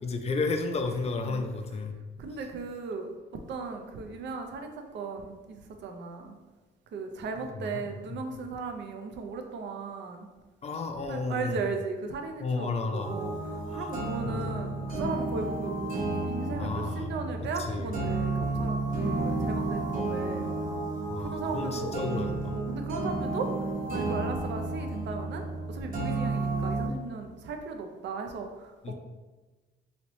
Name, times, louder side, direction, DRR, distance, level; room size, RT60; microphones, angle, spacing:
voice 1, 0.0-1.9 7.4-8.2 10.6-11.6 12.4-13.2 13.7-13.9 14.2-14.6 16.6-17.1 17.6-17.9 21.1-22.6 28.8-28.9, left 3 dB, 35° left, 6 dB, 0.4 m, -33 dB
voice 2, 2.2-3.1 3.5-6.4 6.9-10.3 11.1-20.5 21.2-28.9, right 4 dB, 70° right, 5 dB, 0.5 m, -37 dB
sound 1, 13.0-26.9, right 2 dB, 50° right, 1.0 m, -32 dB
2.9 x 2.8 x 3.0 m, 1.2 s
cardioid pair, 85°, 19 cm